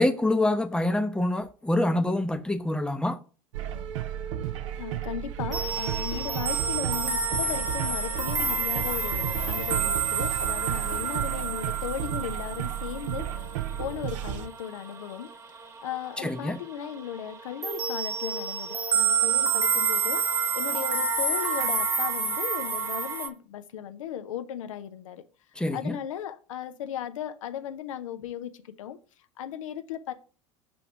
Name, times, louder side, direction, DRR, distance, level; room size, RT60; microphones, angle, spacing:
voice 1, 0.0-3.2 16.2-16.6 25.6-26.0, left 1 dB, 5° left, 0.7 m, -26 dB
sound 1, 3.5-14.5, right 10 dB, 65° right, 0.6 m, -33 dB
voice 2, 4.8-13.3 13.8-15.3 15.8-25.2 25.7-29.0 29.4-30.1, left 9 dB, 70° left, 0.6 m, -36 dB
sound 2, 5.5-15.9 16.2-16.6 16.8-23.3, right 5 dB, 20° right, 1.3 m, -28 dB
6.2 x 3.0 x 5.7 m
figure-of-eight pair, 75°, 17 cm